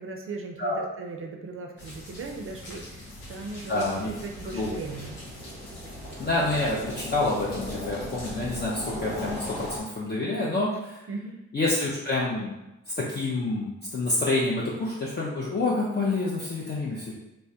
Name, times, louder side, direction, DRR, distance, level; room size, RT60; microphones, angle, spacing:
voice 1, 0.0-5.2 10.7-10.8 11.1-11.4, right 3 dB, 40° right, 3 dB, 0.5 m, -38 dB
sound 1, 1.8-9.8, left 1 dB, 75° left, 1.0 m, -38 dB
voice 2, 3.7-4.1 4.5-4.7 6.2-11.0 11.5-12.5 13.0-17.1, left 2 dB, 30° left, -5 dB, 0.5 m, -28 dB
2.2 x 2.1 x 2.7 m, 0.94 s
supercardioid pair, 50°, 33 cm